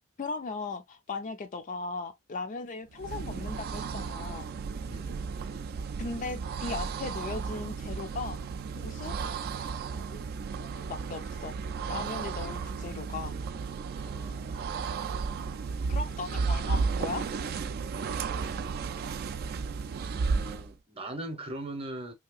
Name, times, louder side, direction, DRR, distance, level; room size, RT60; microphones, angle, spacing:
voice 1, 0.2-4.5 6.0-8.4 8.8-9.2 10.0-10.2 10.6-11.5 11.9-13.4 15.9-17.2, left 4 dB, 35° left, 0.4 m, -37 dB
sound 1, 2.9-20.7, right 5 dB, 45° right, 0.3 m, -34 dB
voice 2, 4.9-5.2 13.9-14.8 20.1-22.1, right 1 dB, 25° right, 0.7 m, -41 dB
3.2 x 2.8 x 2.3 m
head